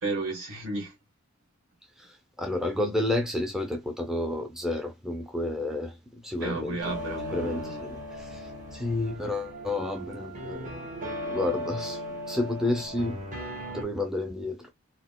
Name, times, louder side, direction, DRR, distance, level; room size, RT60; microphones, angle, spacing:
voice 1, 0.0-0.9 6.4-7.8, right 2 dB, 75° right, 1.4 m, -33 dB
voice 2, 2.0-6.8 7.3-10.9 11.2-13.2 13.7-14.7, left 2 dB, ahead, 0.4 m, -31 dB
sound 1, 6.8-13.8, equal, 35° right, 1.2 m, -37 dB
3.9 x 2.1 x 2.2 m
head